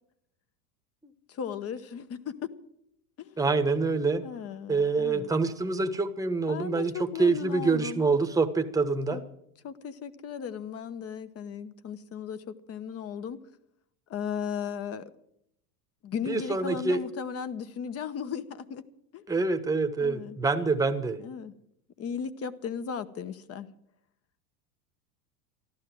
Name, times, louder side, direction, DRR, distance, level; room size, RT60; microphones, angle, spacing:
voice 1, 1.3-2.5 3.2-3.5 4.2-5.3 6.5-8.0 9.1-9.2 9.6-13.4 14.1-15.0 16.0-18.8 19.1-19.2 20.0-20.4 21.2-21.5 22.0-23.7, left 7 dB, 30° left, 13 dB, 1.0 m, -36 dB
voice 2, 3.4-4.2 4.7-9.2 16.3-17.0 19.3-21.2, right 4 dB, 5° right, 8 dB, 1.1 m, -26 dB
14.0 x 12.0 x 7.6 m, 0.75 s
supercardioid pair, 115°, 45 cm